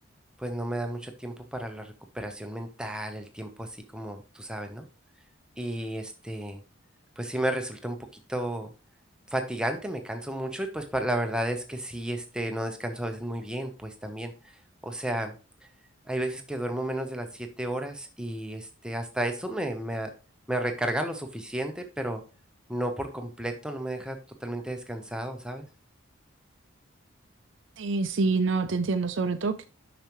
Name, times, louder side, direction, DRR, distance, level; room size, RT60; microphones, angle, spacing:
voice 1, 0.4-4.9 5.6-6.6 7.2-8.0 8.3-8.7 9.3-14.6 14.8-15.3 16.1-20.1 20.5-22.2 22.7-25.7, right 1 dB, 5° right, 0.8 m, -32 dB
voice 2, 27.8-29.7, right 4 dB, 60° right, 0.5 m, -26 dB
8.8 x 5.9 x 3.0 m
head